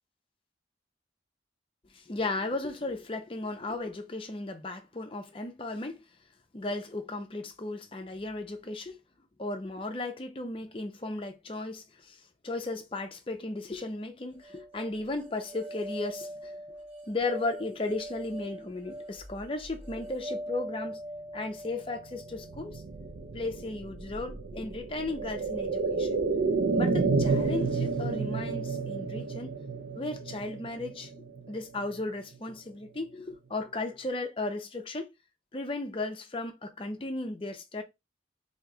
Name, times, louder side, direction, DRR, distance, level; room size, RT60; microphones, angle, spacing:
voice 1, 1.9-6.0 6.5-9.0 9.4-16.5 17.1-21.0 21.3-22.8 23.3-26.2 26.7-29.6 29.9-31.1 31.5-35.1 35.5-37.8, left 2 dB, 30° left, 0.5 m, -35 dB
sound 1, 14.4-23.6, right 1 dB, 35° right, 1.0 m, -42 dB
sound 2, 22.2-32.0 32.3-32.4, right 4 dB, 70° right, 0.4 m, -31 dB
3.0 x 2.8 x 3.5 m
head